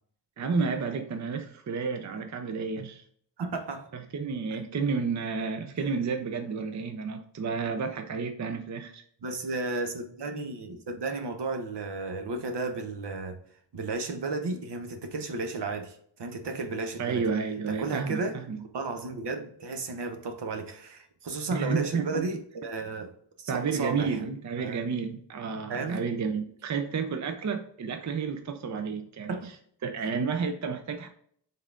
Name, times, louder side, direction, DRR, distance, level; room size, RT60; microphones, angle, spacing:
voice 1, 0.4-3.1 3.9-9.0 17.0-18.6 21.5-22.3 23.5-29.5 29.8-31.1, right 5 dB, 45° right, 0.5 m, -31 dB
voice 2, 3.4-3.9 9.2-13.4 13.7-17.2 17.7-18.4 18.7-23.1 23.4-24.2 24.6-24.8 25.7-26.0 29.3-29.5, right 3 dB, 70° right, 0.9 m, -33 dB
5.3 x 3.7 x 2.4 m
wide cardioid pair, 140°, 42 cm